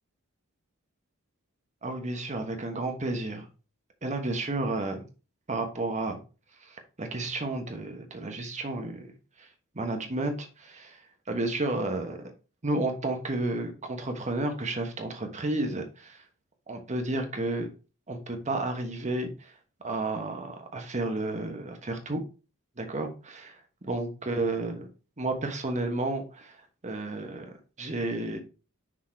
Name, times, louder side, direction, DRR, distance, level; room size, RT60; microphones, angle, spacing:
voice 1, 1.8-3.4 4.0-5.0 5.5-6.2 6.7-9.1 9.7-11.0 11.3-12.3 12.6-16.2 16.7-17.7 18.1-19.3 19.8-22.2 22.8-23.5 23.9-24.9 25.2-26.6 26.8-27.4 27.8-28.4, right 2 dB, 35° right, 5 dB, 1.2 m, -31 dB
6.3 x 4.1 x 4.4 m, 0.33 s
head